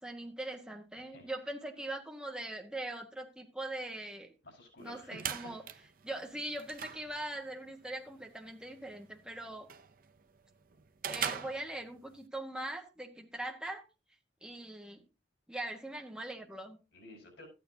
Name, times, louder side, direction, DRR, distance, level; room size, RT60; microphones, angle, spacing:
voice 1, 0.0-4.3 4.8-5.6 6.0-9.7 11.0-13.9 14.4-15.0 15.5-16.8, right 1 dB, 5° right, 1 dB, 1.3 m, -41 dB
voice 2, 1.0-1.3 4.4-5.5 16.9-17.5, left 1 dB, 85° left, 1 dB, 5.0 m, -52 dB
sound 1, 4.8-12.3, right 8 dB, 50° right, 0.6 m, -43 dB
13.5 x 9.2 x 2.8 m, 0.29 s
head